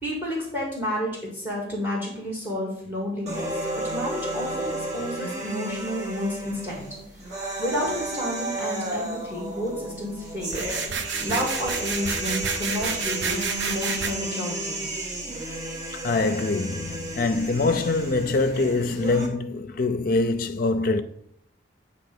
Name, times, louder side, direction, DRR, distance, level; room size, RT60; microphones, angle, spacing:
voice 1, 0.0-3.7 3.9-6.8 7.1-10.7 11.2-14.8, equal, 10° right, 1.7 m, -31 dB
sound 1, 3.3-19.3, right 1 dB, 35° right, 1.5 m, -32 dB
sound 2, 10.5-14.1, right 5 dB, 70° right, 0.7 m, -30 dB
voice 2, 15.9-21.0, left 3 dB, 45° left, 0.5 m, -24 dB
8.5 x 2.9 x 6.0 m
head